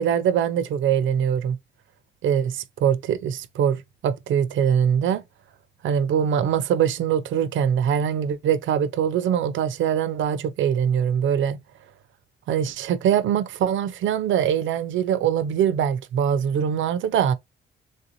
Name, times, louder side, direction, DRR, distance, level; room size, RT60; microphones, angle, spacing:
voice 1, 0.0-1.6 2.2-5.2 5.8-11.6 12.5-17.3, right 8 dB, 80° right, 0.5 m, -23 dB
3.4 x 2.6 x 2.7 m
cardioid pair, 120°, 20 cm